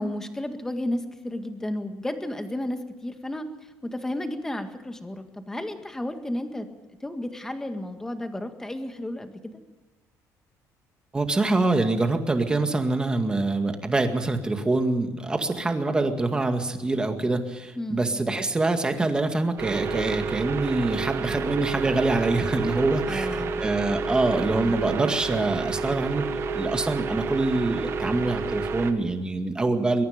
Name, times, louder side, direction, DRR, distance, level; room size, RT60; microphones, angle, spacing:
voice 1, 0.0-3.5 3.8-6.7 7.0-9.6 17.8-18.0 23.1-23.5, left 1 dB, 10° left, 7 dB, 1.8 m, -32 dB
voice 2, 11.1-26.3 26.6-30.1, right 2 dB, 15° right, 6 dB, 2.1 m, -25 dB
sound 1, 19.6-28.9, right 4 dB, 45° right, 1.7 m, -30 dB
22.5 x 22.5 x 5.2 m, 1.1 s
cardioid pair, 165°, 6 cm